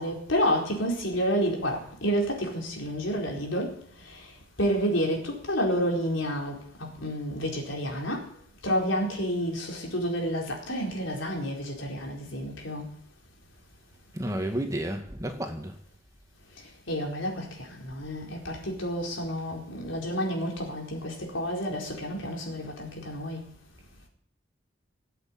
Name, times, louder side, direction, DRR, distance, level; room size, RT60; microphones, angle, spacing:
voice 1, 0.0-3.7 4.6-8.2 8.6-12.9 16.9-23.4, equal, 85° left, 0 dB, 4.4 m, -29 dB
voice 2, 14.1-15.7, right 1 dB, 15° right, 4 dB, 1.8 m, -31 dB
18.0 x 8.4 x 8.7 m, 0.63 s
head